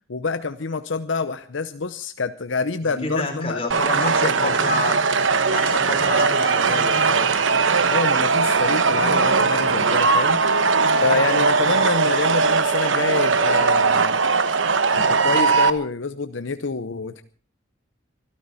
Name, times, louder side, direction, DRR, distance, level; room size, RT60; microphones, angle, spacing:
voice 1, 0.1-4.6 7.9-10.4 11.0-14.2 14.9-17.2, left 4 dB, 70° left, 11 dB, 0.7 m, -27 dB
voice 2, 2.8-4.9 5.4-7.3, left 2 dB, 30° left, 3 dB, 4.1 m, -29 dB
sound 1, 3.7-15.7, right 4 dB, 70° right, 1.0 m, -19 dB
24.0 x 13.5 x 4.1 m, 0.40 s
head